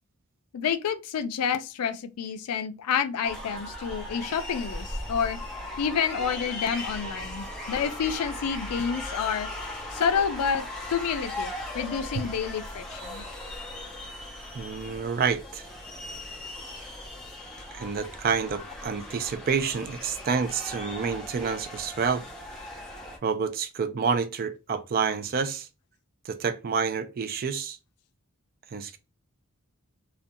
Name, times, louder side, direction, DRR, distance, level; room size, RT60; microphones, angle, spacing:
voice 1, 0.5-5.4 5.8-9.5 9.9-10.6 10.9-13.2, left 7 dB, 85° left, 0.4 m, -29 dB
sound 1, 3.2-23.2, left 1 dB, 5° left, 0.6 m, -38 dB
voice 2, 14.5-15.6 17.7-22.2 23.2-25.7 26.3-27.8 28.7-29.0, right 5 dB, 40° right, 0.3 m, -28 dB
2.5 x 2.2 x 2.6 m
head